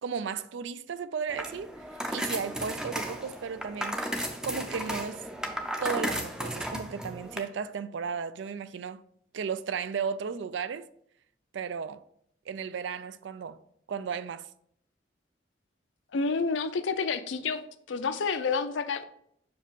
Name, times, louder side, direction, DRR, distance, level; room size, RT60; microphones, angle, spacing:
voice 1, 0.0-1.8 2.1-4.0 4.4-5.2 5.8-9.0 9.3-10.9 11.5-12.0 12.5-13.6 13.9-14.5, right 6 dB, 75° right, 0.4 m, -34 dB
sound 1, 1.3-7.4, equal, 5° right, 0.5 m, -34 dB
voice 2, 16.1-17.6 17.9-19.0, left 4 dB, 85° left, 0.5 m, -29 dB
6.0 x 4.8 x 3.6 m
head